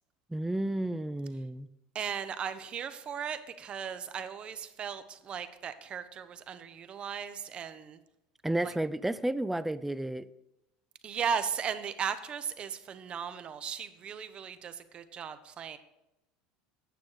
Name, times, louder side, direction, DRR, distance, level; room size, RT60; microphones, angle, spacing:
voice 1, 0.3-1.7 8.4-10.2, right 1 dB, 5° right, 14 dB, 0.4 m, -32 dB
voice 2, 1.9-8.0 8.6-8.7 11.0-15.8, right 7 dB, 35° right, 12 dB, 0.7 m, -37 dB
9.2 x 7.1 x 4.8 m, 0.91 s
supercardioid pair, 115°, 3 cm